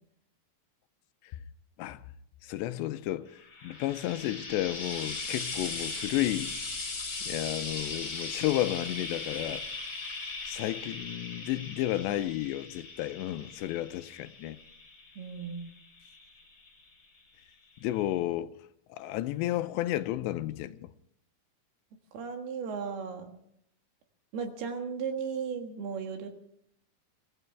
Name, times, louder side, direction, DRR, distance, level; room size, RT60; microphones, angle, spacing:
voice 1, 2.4-6.5 7.2-9.6 10.5-14.6 17.8-18.5 18.9-20.9, left 14 dB, 85° left, 2.9 m, -32 dB
Frying (food), 3.4-16.8 17.8-17.9, left 3 dB, 25° left, 3.2 m, -39 dB
voice 2, 15.2-15.7 22.1-23.4 24.3-26.3, right 6 dB, 70° right, 3.4 m, -36 dB
24.5 x 16.0 x 3.5 m
omnidirectional pair, 5.0 m